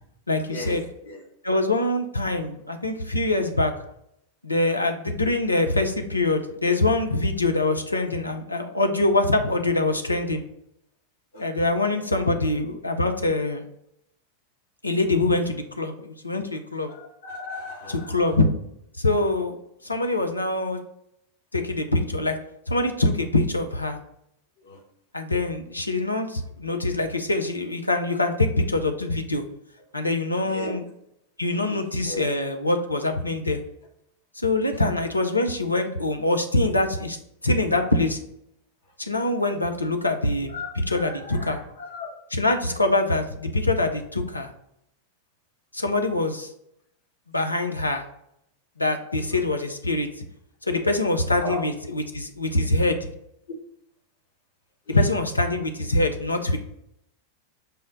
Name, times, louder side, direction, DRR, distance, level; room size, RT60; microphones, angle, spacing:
voice 1, 0.3-0.8 1.4-3.7 4.4-10.4 11.4-13.6 14.8-16.9 17.9-18.5 19.0-19.6 19.8-20.8 21.5-22.4 22.7-24.0 25.1-29.4 29.9-30.8 31.4-33.6 34.3-37.2 37.4-38.2 39.0-40.6 40.9-41.6 42.3-44.5 45.7-46.5 47.3-48.0 48.8-50.3 50.6-53.1 54.9-56.6, left 2 dB, 85° left, 5 dB, 0.4 m, -24 dB
voice 2, 11.3-11.7 12.3-12.4 16.9-18.3 24.6-24.8 30.4-30.7 31.5-32.3 39.2-39.3 40.5-42.1 49.3-49.4 51.4-51.6 54.9-55.0, left 3 dB, 60° left, 0 dB, 1.1 m, -37 dB
5.5 x 2.1 x 3.7 m, 0.78 s
figure-of-eight pair, 90°, 0 cm